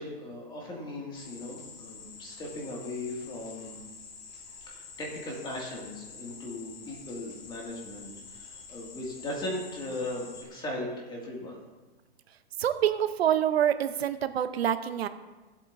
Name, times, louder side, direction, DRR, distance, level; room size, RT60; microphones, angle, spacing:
voice 1, 0.0-3.8 4.7-11.6, left 1 dB, 15° left, -2 dB, 2.1 m, -38 dB
sound 1, 1.1-10.4, left 5 dB, 40° left, 1.7 m, -48 dB
voice 2, 12.6-15.1, right 10 dB, 85° right, 11 dB, 0.7 m, -26 dB
16.5 x 8.1 x 2.6 m, 1.2 s
hypercardioid pair, 145°, 30 cm